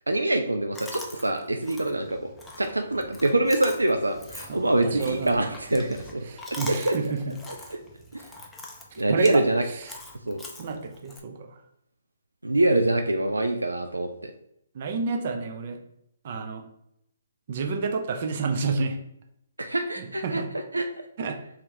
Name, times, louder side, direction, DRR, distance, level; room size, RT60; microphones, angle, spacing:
voice 1, 0.1-2.3 2.6-7.1 7.7-7.8 8.1-8.2 9.0-9.6 10.3-10.4 12.4-14.3 19.6-20.4 20.7-20.9, right 1 dB, 90° right, 6 dB, 0.3 m, -25 dB
Chewing mastication, 0.7-11.2, left 2 dB, 10° left, 0.5 m, -43 dB
voice 2, 4.5-5.5 6.3-7.3 8.9-9.4 9.8-9.9 10.6-11.5 14.7-15.8 16.2-16.6 17.5-19.0 20.0-20.5 21.2-21.4, right 4 dB, 50° right, 4 dB, 0.6 m, -30 dB
3.1 x 2.8 x 3.7 m, 0.77 s
figure-of-eight pair, 135°, 0 cm